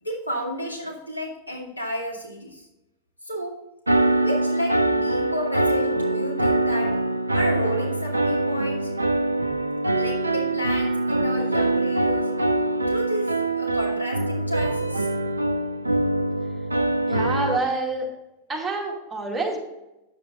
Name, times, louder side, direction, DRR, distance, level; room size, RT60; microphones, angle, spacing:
voice 1, 0.0-2.7 3.2-3.6 4.1-7.0 7.3-8.9 9.9-12.3 12.9-15.1, equal, 85° left, -3 dB, 2.2 m, -31 dB
sound 1, 3.9-17.6, right 2 dB, 80° right, 0.4 m, -23 dB
voice 2, 17.1-18.1 18.5-19.6, right 2 dB, 10° right, -2 dB, 2.4 m, -27 dB
9.1 x 7.4 x 3.8 m, 0.94 s
figure-of-eight pair, 90°, 0 cm